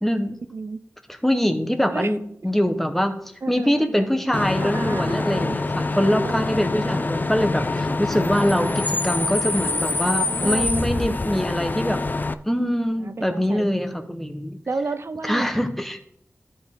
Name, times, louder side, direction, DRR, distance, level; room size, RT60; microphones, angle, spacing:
voice 1, 0.0-0.4 1.2-2.2 2.4-3.2 3.5-12.0 12.5-14.6 15.2-16.0, equal, 5° left, 7 dB, 1.0 m, -23 dB
voice 2, 3.4-4.1 4.6-5.6 6.2-6.5 8.4-9.1 10.0-11.2 13.0-14.0 14.7-15.5, right 3 dB, 55° right, 11 dB, 0.4 m, -33 dB
Bus / Idling / Screech, 4.3-12.3, left 3 dB, 35° left, 0.4 m, -25 dB
13.0 x 4.4 x 3.7 m, 0.70 s
wide cardioid pair, 60°, 5 cm